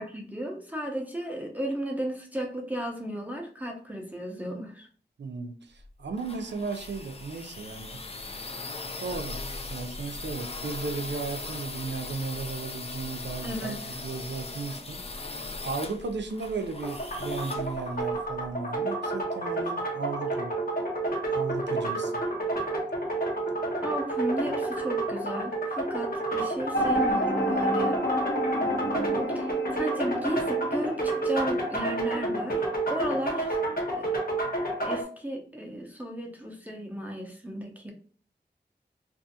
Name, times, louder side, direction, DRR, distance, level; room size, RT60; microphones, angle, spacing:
voice 1, 0.0-4.9 13.4-13.8 23.8-28.0 28.5-33.6 34.0-34.1 34.8-37.9, right 1 dB, 10° right, -1 dB, 0.6 m, -34 dB
voice 2, 5.2-8.0 9.0-15.0 15.6-20.6 21.3-22.1, right 4 dB, 80° right, 6 dB, 0.4 m, -35 dB
sound 1, 5.8-18.5, left 3 dB, 35° left, 0.4 m, -39 dB
sound 2, 16.7-35.0, right 2 dB, 55° left, 0.9 m, -30 dB
sound 3, 26.7-32.3, equal, 85° left, 0.7 m, -30 dB
2.6 x 2.4 x 2.7 m, 0.44 s
wide cardioid pair, 60°, 18 cm